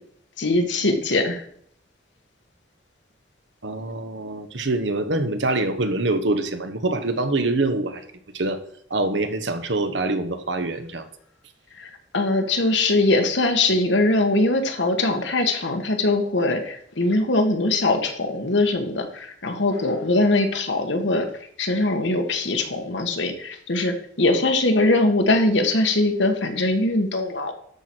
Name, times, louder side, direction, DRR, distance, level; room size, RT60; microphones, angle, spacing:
voice 1, 0.4-1.4 11.8-21.3 21.6-27.5, left 2 dB, 75° left, 5 dB, 1.5 m, -21 dB
voice 2, 3.6-8.0 8.3-8.6 8.9-11.1, right 2 dB, 75° right, 9 dB, 1.1 m, -25 dB
12.5 x 4.5 x 6.2 m, 0.66 s
head